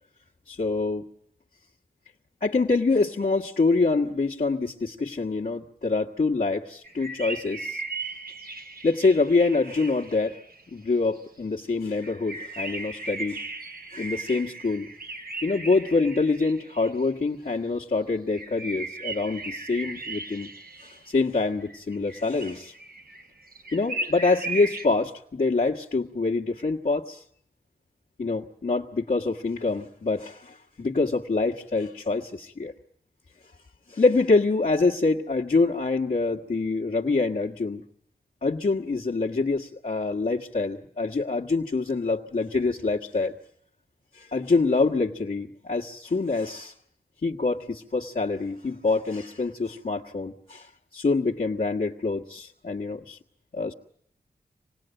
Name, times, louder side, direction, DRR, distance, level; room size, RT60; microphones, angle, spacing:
voice 1, 0.5-1.0 2.4-7.8 8.8-10.4 10.7-13.4 13.9-14.9 15.4-20.5 20.8-22.7 23.7-27.2 28.2-32.7 33.9-37.8 38.4-43.3 44.1-46.7 47.2-53.2 53.5-53.7, left 3 dB, 55° left, -3 dB, 1.5 m, -25 dB
sound 1, 6.8-11.2 12.0-17.1 18.3-21.1 21.6-24.9, right 2 dB, 65° right, 1.7 m, -37 dB
26.5 x 19.0 x 9.0 m, 0.72 s
wide cardioid pair, 110°, 16 cm